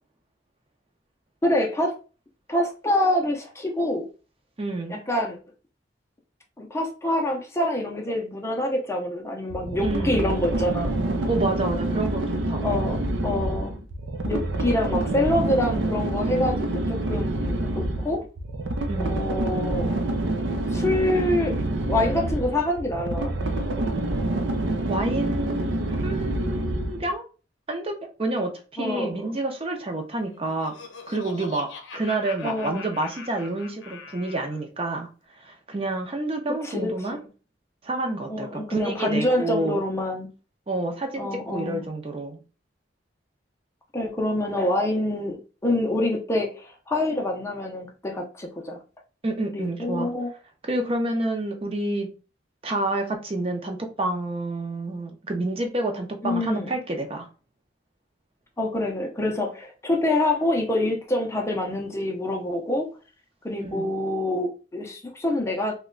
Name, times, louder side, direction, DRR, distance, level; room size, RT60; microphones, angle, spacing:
voice 1, 1.4-2.0 2.5-4.1 4.9-5.4 6.6-10.9 12.6-13.8 14.2-18.2 19.0-20.0 20.7-21.6 21.9-23.3 28.8-29.4 32.4-32.9 36.6-37.1 38.3-40.3 41.2-41.8 43.9-48.8 49.5-50.3 56.2-56.7 58.6-62.9 63.4-65.7, left 1 dB, 15° left, 0.5 m, -26 dB
voice 2, 4.6-5.0 9.8-10.2 11.3-12.7 18.9-19.3 24.9-27.2 27.7-27.9 28.2-30.7 31.1-31.7 31.9-35.1 35.4-37.2 37.8-39.8 40.7-42.4 49.2-50.1 50.6-52.1 52.6-57.3 63.6-63.9, right 2 dB, 30° right, 0.6 m, -29 dB
sound 1, 9.5-27.1, right 1 dB, 80° right, 0.5 m, -27 dB
Laughter, 30.2-34.6, left 4 dB, 80° left, 0.6 m, -42 dB
3.0 x 2.2 x 3.6 m
head